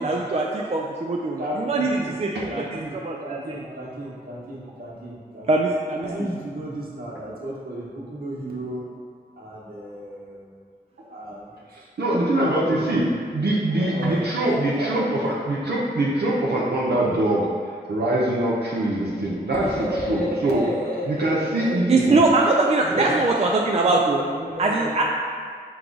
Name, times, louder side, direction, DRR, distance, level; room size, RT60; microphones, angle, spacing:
voice 1, 0.0-3.7 5.5-6.3 21.9-24.2 24.6-25.0, right 3 dB, 40° right, -1 dB, 0.4 m, -22 dB
voice 2, 1.4-2.2 2.5-5.5 6.0-8.9 9.4-10.5 11.1-11.8 12.4-13.0 13.8-15.1 19.5-22.2 22.8-23.2 23.8-25.0, equal, 60° right, -6 dB, 1.2 m, -33 dB
voice 3, 11.7-17.5 17.9-20.6 21.1-22.2 22.9-23.1, right 1 dB, 75° right, -5 dB, 0.7 m, -23 dB
4.6 x 2.3 x 3.8 m, 2.1 s
cardioid pair, 50°, 17 cm